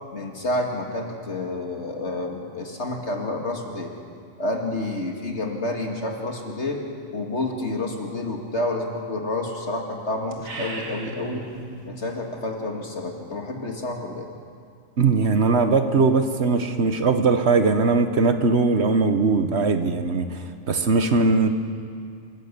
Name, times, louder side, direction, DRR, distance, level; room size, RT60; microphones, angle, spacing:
voice 1, 0.1-3.9 4.4-6.8 7.1-11.5 11.8-14.3, left 2 dB, 55° left, 1 dB, 2.5 m, -29 dB
sound 1, 10.3-11.9, right 3 dB, 80° right, 2.4 m, -36 dB
voice 2, 15.0-21.5, right 4 dB, 55° right, 8 dB, 1.4 m, -20 dB
26.5 x 15.5 x 6.9 m, 2.3 s
omnidirectional pair, 1.4 m